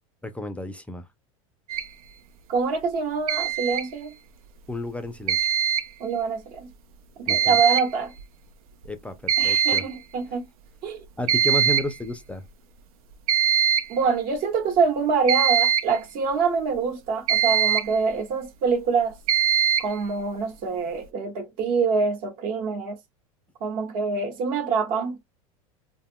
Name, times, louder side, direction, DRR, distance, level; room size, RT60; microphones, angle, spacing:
voice 1, 0.2-1.0 4.7-5.5 7.3-7.6 8.8-9.9 11.2-12.4, left 1 dB, 5° left, 0.4 m, -32 dB
sound 1, 1.7-1.9 3.3-3.9 5.3-5.9 7.3-7.9 8.2-8.3 8.8-8.9 9.3-9.9 11.3-11.9 13.3-14.0 15.3-16.0 17.3-18.0 19.3-20.0, right 9 dB, 85° right, 0.4 m, -22 dB
voice 2, 2.5-4.1 6.0-6.7 7.3-8.1 9.4-10.4 10.8-11.0 13.9-19.2 19.8-22.9 23.6-25.1, right 5 dB, 60° right, 1.1 m, -25 dB
2.3 x 2.0 x 3.5 m
hypercardioid pair, 100°, 18 cm